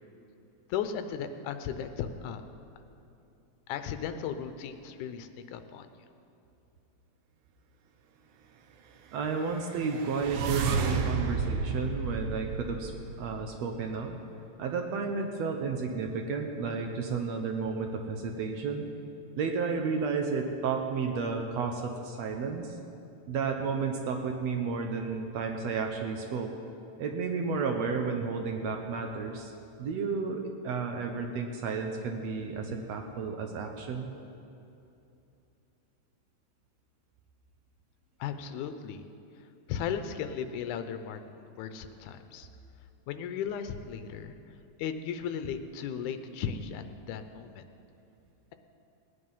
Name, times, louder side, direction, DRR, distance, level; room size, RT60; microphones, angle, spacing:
voice 1, 0.7-2.4 3.7-5.9 38.2-39.1 39.7-42.5 43.1-44.3 44.8-47.6, left 8 dB, 85° left, 9 dB, 2.2 m, -36 dB
voice 2, 9.1-12.9 13.2-14.2 14.6-18.9 19.4-22.8 23.3-26.5 27.0-29.5 29.8-34.1, right 5 dB, 70° right, 3 dB, 1.9 m, -32 dB
sound 1, 9.4-13.6, right 5 dB, 90° right, 2.3 m, -32 dB
18.0 x 9.9 x 5.5 m, 2.7 s
omnidirectional pair, 3.4 m